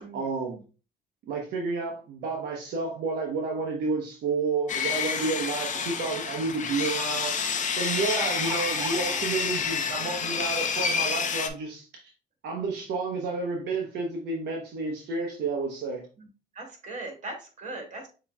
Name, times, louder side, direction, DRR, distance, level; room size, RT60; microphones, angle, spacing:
voice 1, 0.1-0.6 1.3-7.4 7.8-11.9 12.4-16.1, right 4 dB, 75° right, 0.9 m, -30 dB
Sawing, 4.7-11.5, left 6 dB, 45° left, 0.7 m, -29 dB
voice 2, 5.6-6.0 8.0-8.4 16.2-16.3 16.5-18.1, right 2 dB, 45° right, 2.2 m, -40 dB
sound 1, 6.4-6.5 8.0-9.2 10.2-10.3 10.7-10.8, right 4 dB, 25° right, 0.4 m, -38 dB
6.9 x 3.0 x 2.3 m
supercardioid pair, 75°, 18 cm